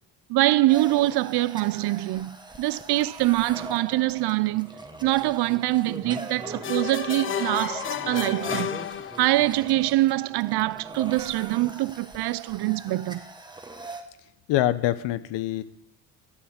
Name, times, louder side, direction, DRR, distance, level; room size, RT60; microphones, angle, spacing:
voice 1, 0.3-4.7 5.0-8.7 9.2-13.2, right 17 dB, 65° right, 0.6 m, -24 dB
sound 1, 0.7-14.0, right 2 dB, 10° right, 1.2 m, -41 dB
sound 2, 6.6-9.6, left 9 dB, 30° left, 0.5 m, -32 dB
voice 2, 14.5-15.6, left 14 dB, 80° left, 0.9 m, -24 dB
13.0 x 7.0 x 9.0 m
cardioid pair, 100°, 42 cm